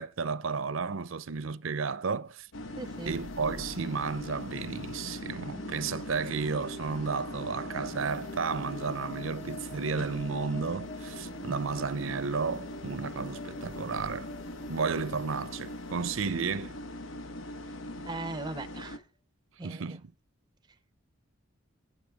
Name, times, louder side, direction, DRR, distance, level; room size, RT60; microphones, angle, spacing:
voice 1, 0.0-2.5 3.1-14.3 14.7-16.7 19.6-20.1, right 5 dB, 75° right, 0.6 m, -33 dB
sound 1, 2.5-19.0, left 1 dB, 80° left, 1.1 m, -41 dB
sound 2, 2.8-17.5, left 1 dB, 55° left, 3.5 m, -49 dB
voice 2, 2.8-3.1 11.4-11.5 18.1-19.0 19.6-19.8, right 2 dB, 20° right, 0.5 m, -38 dB
8.9 x 8.4 x 4.8 m
head